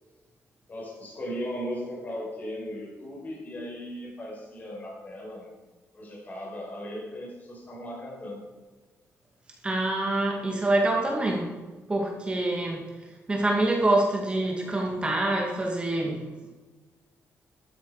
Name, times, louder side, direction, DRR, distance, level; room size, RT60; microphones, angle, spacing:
voice 1, 0.7-5.6 5.9-8.4, equal, 35° left, -4 dB, 5.4 m, -37 dB
voice 2, 9.6-11.5 11.9-12.8 13.3-16.5, right 2 dB, 20° right, 0 dB, 2.3 m, -26 dB
13.5 x 12.0 x 5.0 m, 1.3 s
cardioid pair, 130°, 5 cm